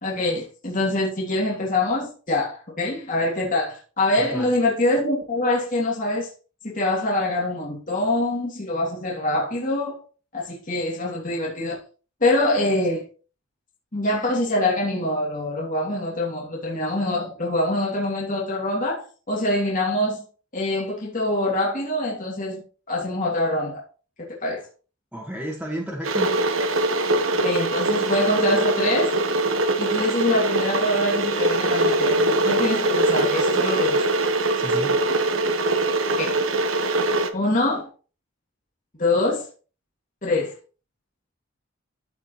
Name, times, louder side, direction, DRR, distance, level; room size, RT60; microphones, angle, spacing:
voice 1, 0.0-6.3 6.6-10.0 10.3-11.8 12.2-13.0 13.9-20.2 20.5-22.6 22.9-23.8 24.2-24.7 27.4-29.2 29.8-34.0 36.2-36.4 37.3-37.9 39.0-39.4 40.2-40.5, left 1 dB, 40° left, 2.9 m, -24 dB
voice 2, 4.2-4.5 25.1-26.3 34.6-35.0, equal, 5° right, 1.7 m, -32 dB
Water / Boiling, 26.0-37.3, right 2 dB, 75° right, 1.1 m, -22 dB
14.5 x 5.0 x 3.2 m
head